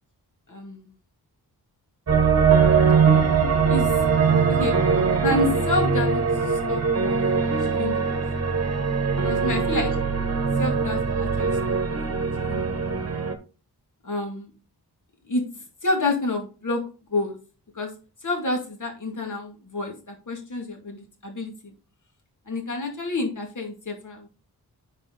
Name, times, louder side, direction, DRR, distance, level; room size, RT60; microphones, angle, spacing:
voice 1, 0.5-0.9 3.2-3.9 4.5-4.8 5.2-8.2 9.1-10.0 10.6-12.9 14.0-14.5 15.3-16.8 17.1-17.4 17.7-17.9 18.2-21.7 22.5-24.3, left 2 dB, 45° left, 3 dB, 2.4 m, -29 dB
sound 1, 2.1-13.3, right 5 dB, 40° right, 1.3 m, -21 dB
9.9 x 4.9 x 4.0 m, 0.34 s
wide cardioid pair, 150°, 40 cm